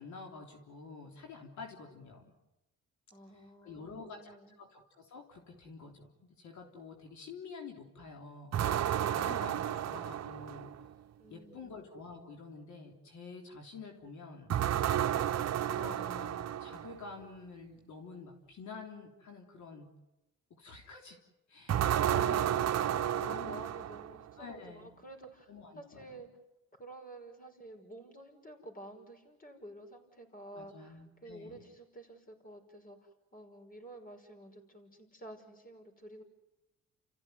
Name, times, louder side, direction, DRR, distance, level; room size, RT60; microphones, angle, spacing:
voice 1, 0.0-2.2 3.3-8.6 9.1-10.7 11.3-14.5 15.5-19.9 20.6-21.2 21.5-21.9 22.1-23.6 24.4-24.9 25.5-26.2 30.5-31.7, left 4 dB, 70° left, 2 dB, 3.6 m, -49 dB
voice 2, 3.1-4.6 11.2-11.8 21.7-26.3 26.8-36.2, right 2 dB, 30° left, 5 dB, 5.6 m, -51 dB
sound 1, 8.5-10.9 14.5-17.0 21.7-24.3, right 10 dB, 60° right, 0.9 m, -32 dB
30.0 x 15.0 x 9.5 m, 0.98 s
cardioid pair, 90°, 30 cm